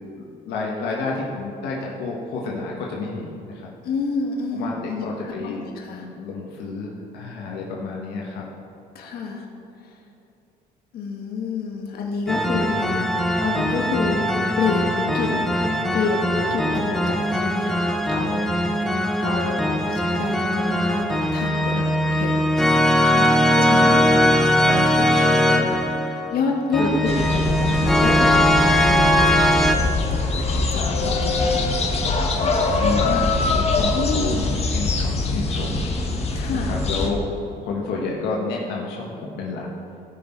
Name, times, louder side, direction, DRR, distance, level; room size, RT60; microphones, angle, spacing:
voice 1, 0.1-3.7 4.5-5.7 6.0-8.4 12.8-13.3 19.4-19.9 21.7-22.0 23.1-24.0 24.6-25.9 26.8-26.9 32.7-35.9 36.6-37.2 37.6-39.7, left 4 dB, 85° left, -3 dB, 1.6 m, -30 dB
voice 2, 3.8-6.1 9.0-9.5 9.8-9.9 10.9-13.0 13.4-14.2 14.6-15.3 15.9-18.5 19.2-22.5 23.6-24.2 26.1-31.8 33.9-34.4 36.3-36.8, left 4 dB, 65° left, 0 dB, 1.8 m, -28 dB
sound 1, 12.3-29.7, equal, ahead, 0.7 m, -20 dB
sound 2, 27.1-37.1, left 3 dB, 40° left, 1.5 m, -23 dB
17.0 x 5.9 x 4.6 m, 2.7 s
cardioid pair, 110°, 17 cm